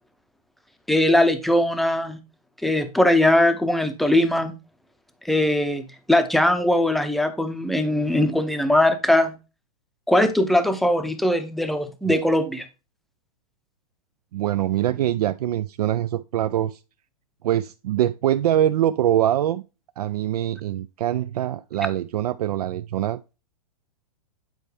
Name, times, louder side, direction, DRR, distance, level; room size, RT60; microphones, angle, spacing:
voice 1, 0.9-2.2 2.6-4.5 5.2-9.3 10.1-12.6, left 1 dB, ahead, 0.6 m, -20 dB
voice 2, 14.3-16.8 17.4-19.6 20.0-23.2, right 12 dB, 75° right, 0.4 m, -23 dB
9.1 x 4.4 x 3.2 m
hypercardioid pair, 140°, 20 cm